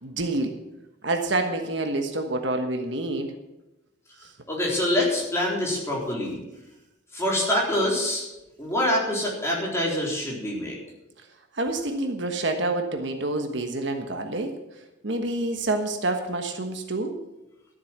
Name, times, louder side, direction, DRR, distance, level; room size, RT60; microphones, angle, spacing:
voice 1, 0.0-0.6 1.0-3.3 11.5-14.5 15.0-17.2, right 2 dB, 60° right, 5 dB, 1.3 m, -27 dB
voice 2, 4.5-6.4 7.1-8.3 8.6-10.8, left 1 dB, 15° left, -4 dB, 3.9 m, -25 dB
13.0 x 8.1 x 7.4 m, 0.96 s
head